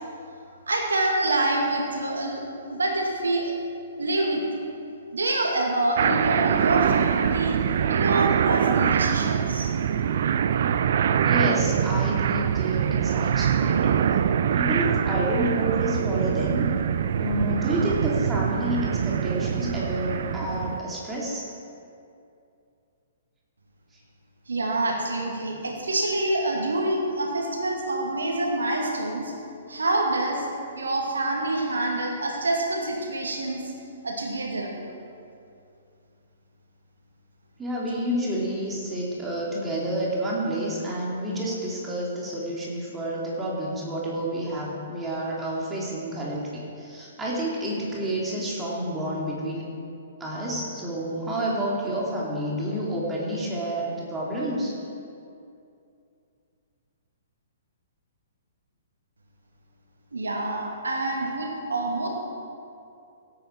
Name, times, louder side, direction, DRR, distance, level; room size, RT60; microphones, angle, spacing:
voice 1, 0.7-3.5 4.0-4.4 5.1-7.6 7.9-9.7 24.5-29.3 29.7-30.5 30.8-33.6 34.0-34.7 60.1-62.1, right 2 dB, 75° right, 0 dB, 2.2 m, -26 dB
sound 1, 6.0-20.8, right 8 dB, 55° right, 0.5 m, -24 dB
voice 2, 11.2-14.1 14.5-16.7 17.2-21.4 37.6-49.7 50.2-54.7, right 1 dB, 15° right, -5 dB, 2.8 m, -29 dB
17.0 x 8.9 x 4.5 m, 2.5 s
figure-of-eight pair, 120°, 0 cm